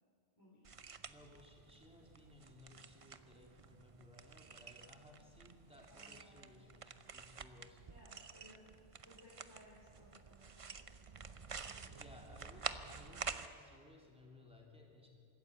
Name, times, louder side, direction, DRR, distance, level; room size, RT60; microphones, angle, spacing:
voice 1, 0.4-0.7 5.9-6.6 7.9-11.1 11.6-12.4, left 1 dB, 15° left, -7 dB, 4.4 m, -63 dB
sound 1, 0.6-13.5, right 5 dB, 35° right, 0.6 m, -49 dB
voice 2, 1.1-7.8 11.9-15.1, left 1 dB, 5° right, -1 dB, 3.1 m, -60 dB
25.0 x 13.5 x 8.1 m, 2.5 s
omnidirectional pair, 1.3 m